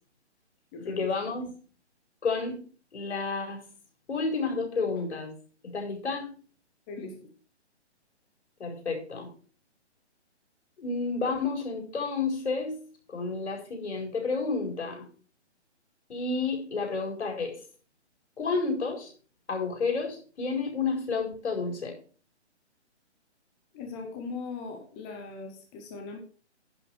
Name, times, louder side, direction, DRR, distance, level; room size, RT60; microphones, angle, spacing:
voice 1, 0.9-1.5 2.2-2.6 2.9-3.6 4.1-5.3 5.7-6.3 8.6-9.3 10.8-12.8 13.1-15.1 16.1-17.6 18.4-19.1 19.5-21.9, left 4 dB, 70° left, 2 dB, 5.1 m, -30 dB
voice 2, 6.9-7.3 23.7-26.2, left 4 dB, 10° left, 3 dB, 0.6 m, -39 dB
10.5 x 7.4 x 4.9 m, 0.40 s
hypercardioid pair, 155°, 35 cm